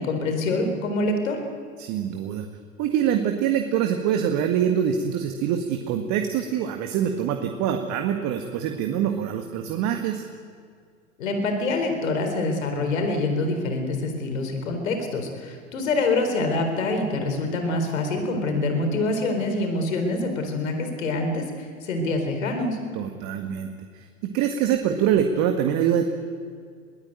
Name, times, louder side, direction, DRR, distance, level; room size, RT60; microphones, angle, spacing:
voice 1, 0.0-1.4 11.2-22.8, left 2 dB, 70° left, 5 dB, 4.4 m, -25 dB
voice 2, 1.8-2.5 2.8-10.2 22.9-26.0, right 9 dB, 40° right, 5 dB, 1.9 m, -24 dB
21.5 x 18.0 x 9.1 m, 2.1 s
figure-of-eight pair, 95°, 41 cm